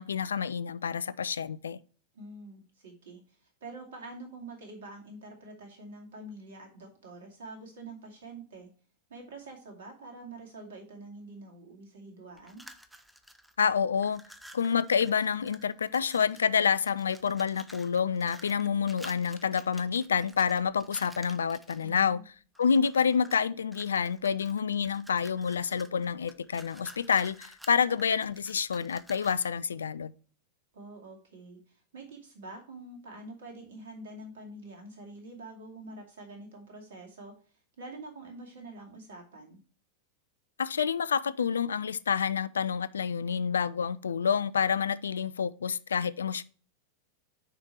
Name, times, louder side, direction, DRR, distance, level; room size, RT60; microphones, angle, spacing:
voice 1, 0.0-1.8 13.6-14.2 14.5-22.2 22.6-30.1 40.6-46.4, left 6 dB, 70° left, 0.3 m, -28 dB
voice 2, 2.1-8.7 9.1-12.6 21.7-22.3 30.7-37.3 37.8-39.6, right 2 dB, 60° right, 2.3 m, -46 dB
sound 1, 12.4-13.7 13.9-16.5 16.8-22.0 22.6-23.4 23.7-29.6, equal, 5° right, 0.7 m, -52 dB
6.7 x 5.1 x 4.4 m
figure-of-eight pair, 90°, 0 cm